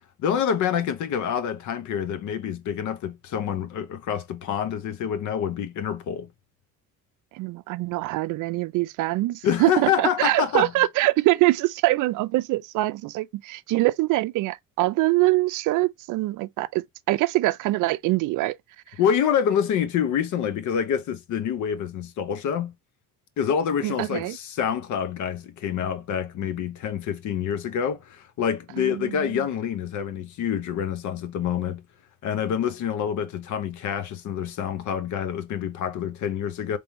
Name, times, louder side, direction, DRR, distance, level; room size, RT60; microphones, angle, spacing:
voice 1, 0.2-6.3 9.4-10.7 19.0-22.7 23.4-31.8 32.2-36.8, left 8 dB, 60° left, 0.9 m, -27 dB
voice 2, 7.3-18.6 23.8-24.4 28.8-29.5, right 19 dB, 65° right, 0.5 m, -24 dB
3.5 x 3.4 x 2.8 m
cardioid pair, 120°, 33 cm